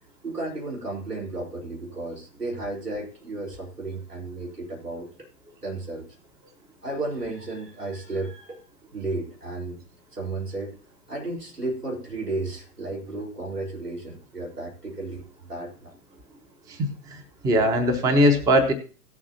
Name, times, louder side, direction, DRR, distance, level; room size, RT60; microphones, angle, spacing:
voice 1, 0.2-5.1 5.6-6.1 6.8-9.8 10.1-10.8 11.1-15.9, right 2 dB, 85° right, -2 dB, 3.7 m, -33 dB
voice 2, 16.7-18.7, equal, 10° right, 7 dB, 0.6 m, -21 dB
17.0 x 7.3 x 2.7 m, 0.38 s
figure-of-eight pair, 110°, 46 cm